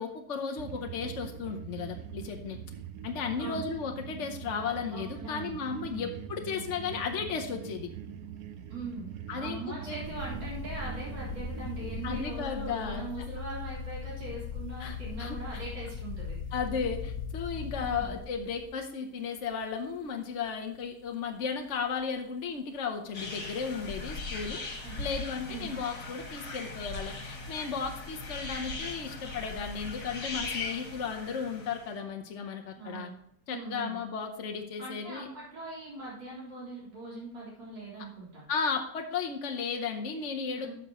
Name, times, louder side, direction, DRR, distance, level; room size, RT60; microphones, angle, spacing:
voice 1, 0.0-2.6 3.0-7.9 9.3-9.6 9.9-10.0 12.0-13.0 14.8-15.6 16.5-24.6 25.0-33.1 33.5-35.3 38.5-40.7, left 6 dB, 50° left, 4 dB, 1.0 m, -35 dB
sound 1, 0.6-12.2, right 9 dB, 65° right, 1.0 m, -42 dB
voice 2, 3.4-3.7 4.9-6.1 8.7-9.1 9.3-16.4 17.8-18.1 24.8-25.0 25.5-25.7 32.8-33.2 33.5-34.0 34.8-38.4 40.6-40.7, right 2 dB, 90° right, -8 dB, 4.4 m, -41 dB
sound 2, 10.0-18.8 19.5-19.9 20.5-20.6 24.2-24.8, left 5 dB, 70° left, 1.4 m, -39 dB
sound 3, 23.1-31.9, left 3 dB, 90° left, 2.8 m, -39 dB
12.5 x 6.6 x 3.0 m, 0.75 s
omnidirectional pair, 1.8 m